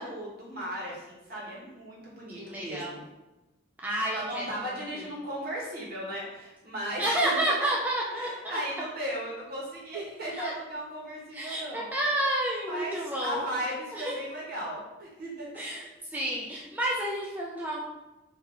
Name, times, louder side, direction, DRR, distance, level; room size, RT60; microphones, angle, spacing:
voice 1, 0.0-3.0 4.1-7.4 8.1-11.9 12.7-15.5, equal, 55° right, -4 dB, 1.3 m, -36 dB
voice 2, 2.4-2.9 3.8-5.1 7.0-8.6 10.3-10.5 11.3-13.5 13.9-14.2 15.6-17.8, right 1 dB, 10° right, -4 dB, 0.4 m, -30 dB
3.7 x 2.7 x 3.8 m, 1.0 s
head